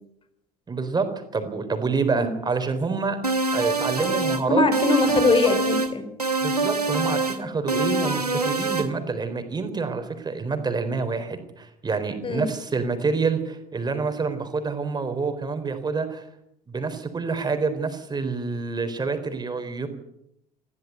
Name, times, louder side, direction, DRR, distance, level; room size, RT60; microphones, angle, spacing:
voice 1, 0.7-3.2 3.5-4.6 6.4-16.2 16.7-19.9, right 4 dB, 20° right, 7 dB, 3.9 m, -27 dB
sound 1, 3.2-4.4 4.7-5.9 6.2-7.4 7.7-8.9, right 3 dB, 85° right, 1.4 m, -25 dB
voice 2, 4.5-6.1 12.2-12.5, left 3 dB, 25° left, 9 dB, 3.9 m, -21 dB
22.0 x 15.0 x 8.2 m, 0.78 s
figure-of-eight pair, 60°, 19 cm